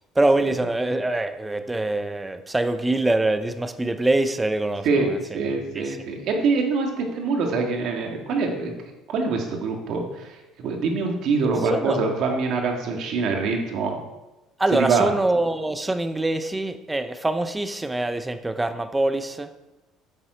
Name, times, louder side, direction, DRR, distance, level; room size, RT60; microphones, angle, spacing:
voice 1, 0.2-5.4 5.7-6.0 11.6-12.0 14.6-19.5, right 2 dB, 5° right, 10 dB, 0.5 m, -24 dB
voice 2, 4.8-8.7 9.1-14.0 14.7-15.1, right 4 dB, 50° right, 2 dB, 1.8 m, -24 dB
9.1 x 7.2 x 5.0 m, 1.0 s
cardioid pair, 175°, 0 cm